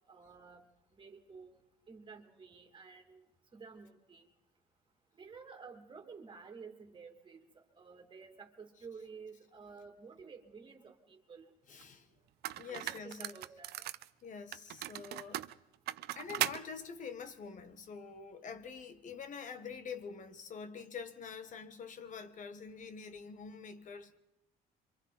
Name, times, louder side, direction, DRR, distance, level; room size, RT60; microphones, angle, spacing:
voice 1, 0.1-0.6 0.9-1.5 1.9-3.2 3.5-4.3 5.2-11.5 12.7-13.8, right 5 dB, 30° right, 2.7 m, -52 dB
voice 2, 11.7-12.1 12.5-13.4 14.2-15.5 16.1-24.2, left 6 dB, 50° left, 1.5 m, -46 dB
sound 1, 11.8-11.9 12.4-14.1 14.5-16.6, right 14 dB, 75° right, 0.7 m, -38 dB
27.0 x 25.0 x 4.2 m
cardioid pair, 110°, 17 cm